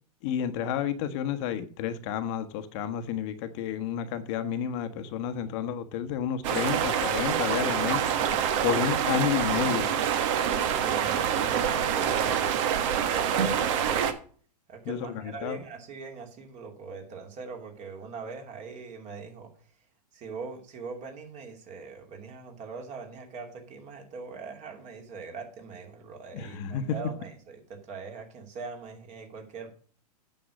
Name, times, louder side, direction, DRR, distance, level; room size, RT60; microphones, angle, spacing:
voice 1, 0.2-8.1 8.6-10.0 14.8-15.6 26.3-27.0, left 9 dB, 45° left, 1.2 m, -31 dB
sound 1, 6.4-14.1, right 8 dB, 50° right, 1.5 m, -26 dB
voice 2, 10.7-12.4 12.9-14.1 14.7-19.5 20.1-29.7, right 4 dB, 35° right, 2.8 m, -41 dB
8.9 x 6.9 x 6.3 m
hypercardioid pair, 110°, 21 cm